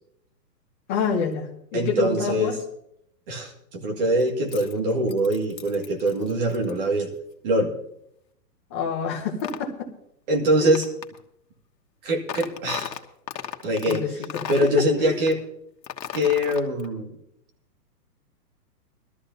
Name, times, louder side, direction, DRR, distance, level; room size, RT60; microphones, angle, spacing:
voice 1, 0.9-2.6 8.7-9.9 10.6-10.8 13.8-14.4 15.0-15.2, left 5 dB, 10° left, -2 dB, 0.7 m, -27 dB
voice 2, 1.7-2.5 3.3-7.1 7.4-7.7 10.3-10.9 12.0-12.9 13.6-14.0 14.5-15.4 16.1-17.2, right 1 dB, 35° right, 2 dB, 2.0 m, -23 dB
sound 1, 4.2-6.7 9.4-9.7 10.7-11.2 12.3-14.0 14.2-14.8 15.3-15.4 15.8-16.9, left 9 dB, 80° left, 1.5 m, -35 dB
20.5 x 13.5 x 2.7 m, 0.74 s
hypercardioid pair, 170°, 49 cm